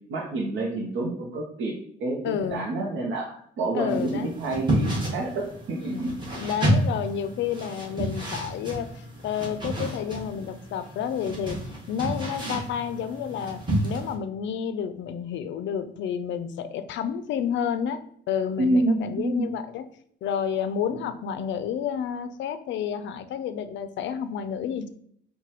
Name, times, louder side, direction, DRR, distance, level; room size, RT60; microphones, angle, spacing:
voice 1, 0.1-1.7 2.0-6.3 18.6-19.6, right 2 dB, 75° right, -1 dB, 0.7 m, -28 dB
voice 2, 2.2-2.7 3.7-4.3 5.9-11.6 11.9-18.0 18.3-19.9 20.2-24.9, left 8 dB, 70° left, 11 dB, 0.4 m, -30 dB
sound 1, 3.9-14.1, right 1 dB, 25° right, 1.4 m, -30 dB
4.6 x 2.2 x 2.9 m, 0.66 s
cardioid pair, 90°, 20 cm